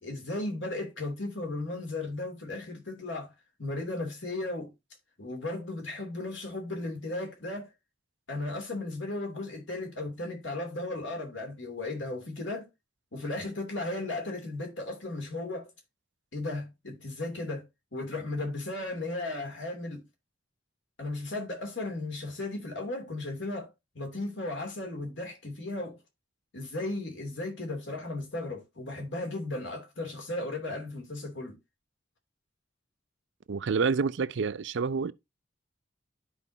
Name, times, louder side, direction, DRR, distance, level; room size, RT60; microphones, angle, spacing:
voice 1, 0.0-3.3 3.6-4.7 5.2-7.7 8.3-12.7 13.1-15.7 16.3-17.6 17.9-20.0 21.0-23.7 23.9-26.0 26.5-31.6, left 2 dB, 65° left, 2.7 m, -35 dB
voice 2, 33.5-35.1, right 5 dB, 65° right, 0.5 m, -28 dB
12.5 x 4.9 x 2.7 m
head